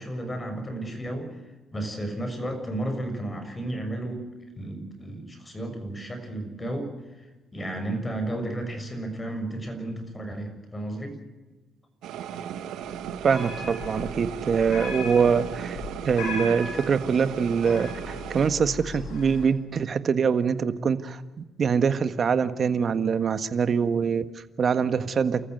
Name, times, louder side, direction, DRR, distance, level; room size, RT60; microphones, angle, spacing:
voice 1, 0.0-1.4 1.7-4.3 4.5-11.2, right 1 dB, 20° left, 6 dB, 6.6 m, -33 dB
sound 1, 12.0-18.5, right 9 dB, 85° right, 1.8 m, -36 dB
sound 2, 12.9-19.4, left 3 dB, 85° left, 7.8 m, -38 dB
voice 2, 13.2-15.8 16.0-21.2 21.6-25.4, right 6 dB, 50° right, 11 dB, 1.6 m, -24 dB
29.5 x 15.0 x 8.0 m, 1.2 s
cardioid pair, 90°, 0 cm